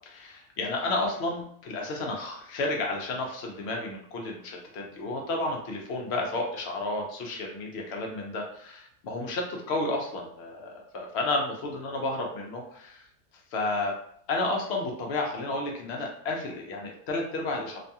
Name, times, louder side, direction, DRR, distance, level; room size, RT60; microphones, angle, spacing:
voice 1, 0.1-13.1 13.5-13.9 14.3-17.8, left 2 dB, 65° left, 0 dB, 0.6 m, -31 dB
2.6 x 2.2 x 2.7 m, 0.64 s
omnidirectional pair, 1.6 m